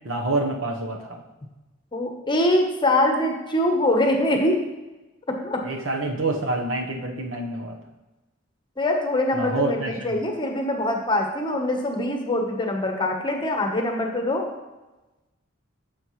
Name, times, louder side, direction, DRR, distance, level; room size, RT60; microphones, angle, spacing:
voice 1, 0.0-1.2 5.6-7.8 9.3-10.2, right 2 dB, 70° right, 2 dB, 1.1 m, -27 dB
voice 2, 1.9-4.6 5.4-5.6 8.8-14.5, left 1 dB, 25° left, 2 dB, 1.0 m, -23 dB
9.7 x 6.5 x 3.2 m, 1.1 s
head